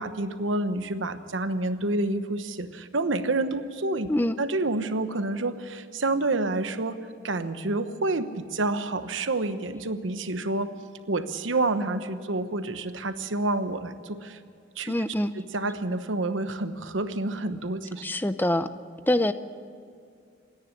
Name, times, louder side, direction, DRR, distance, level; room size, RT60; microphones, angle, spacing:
voice 1, 0.0-4.1 4.4-7.0 7.2-10.7 11.1-14.4 14.8-14.9 15.3-18.0, right 2 dB, 90° right, 10 dB, 1.1 m, -28 dB
voice 2, 14.9-15.3 18.0-18.7 19.1-19.3, left 1 dB, 10° left, 11 dB, 0.6 m, -24 dB
27.5 x 10.0 x 9.9 m, 2.3 s
head